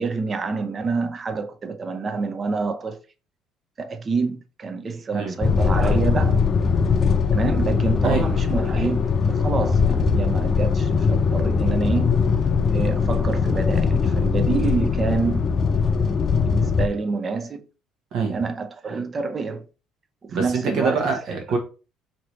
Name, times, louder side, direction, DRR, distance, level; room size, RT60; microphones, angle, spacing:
voice 1, 0.0-3.0 3.8-6.4 7.3-12.2 12.7-15.5 15.8-16.2 16.4-17.7 18.2-19.6 20.2-21.1, right 4 dB, 35° right, 0.6 m, -27 dB
sound 1, 5.4-16.9, left 5 dB, 40° left, 0.6 m, -21 dB
voice 2, 20.3-21.6, right 4 dB, 65° right, 1.0 m, -24 dB
4.5 x 2.8 x 3.1 m
supercardioid pair, 90°, 0 cm